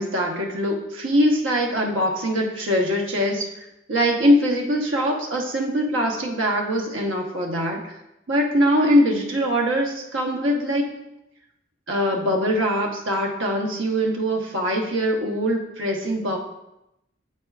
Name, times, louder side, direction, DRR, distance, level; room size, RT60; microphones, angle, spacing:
voice 1, 0.0-8.0 8.3-11.0 11.9-16.4, equal, 85° right, 0 dB, 1.1 m, -22 dB
9.4 x 4.3 x 2.4 m, 0.87 s
head